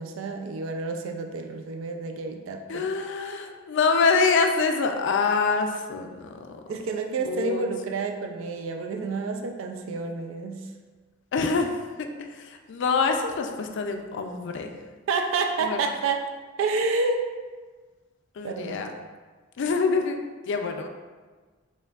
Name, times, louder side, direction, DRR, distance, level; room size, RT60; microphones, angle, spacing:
voice 1, 0.0-2.9 6.7-10.7 15.1-16.2 16.6-17.2 18.4-18.8, right 4 dB, 70° right, 4 dB, 0.3 m, -29 dB
voice 2, 2.7-6.6 7.2-7.6 11.3-14.7 15.6-15.8 18.4-18.9 19.6-20.9, left 4 dB, 60° left, 5 dB, 0.4 m, -25 dB
4.4 x 3.4 x 2.3 m, 1.4 s
head